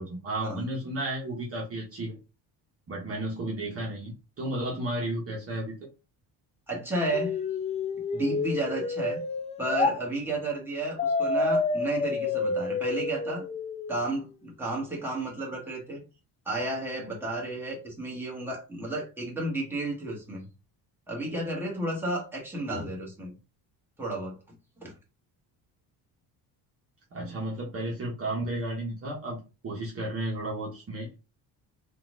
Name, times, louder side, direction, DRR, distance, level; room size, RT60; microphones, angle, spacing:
voice 1, 0.0-2.2 2.9-5.8 27.1-29.4 29.6-31.1, right 1 dB, 35° right, -3 dB, 1.2 m, -33 dB
voice 2, 6.7-7.4 8.1-9.2 9.6-13.4 13.9-16.0 16.5-20.5 21.1-23.4 24.0-24.4 24.8-24.9, right 2 dB, 5° right, -3 dB, 1.7 m, -32 dB
sound 1, 7.1-10.0 11.0-14.0, left 4 dB, 20° left, 0.3 m, -29 dB
4.2 x 2.6 x 3.9 m, 0.30 s
cardioid pair, 145°, 40 cm